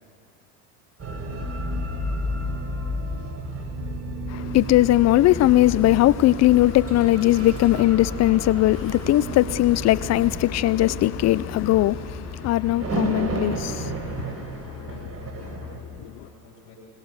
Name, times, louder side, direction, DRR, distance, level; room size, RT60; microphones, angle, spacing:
sound 1, 1.0-15.8, equal, 30° right, 4.3 m, -32 dB
voice 1, 4.3-14.9, left 16 dB, 35° left, 0.5 m, -20 dB
voice 2, 14.9-16.7, left 4 dB, 65° left, 7.3 m, -49 dB
24.5 x 21.0 x 6.7 m
hypercardioid pair, 90°, 47 cm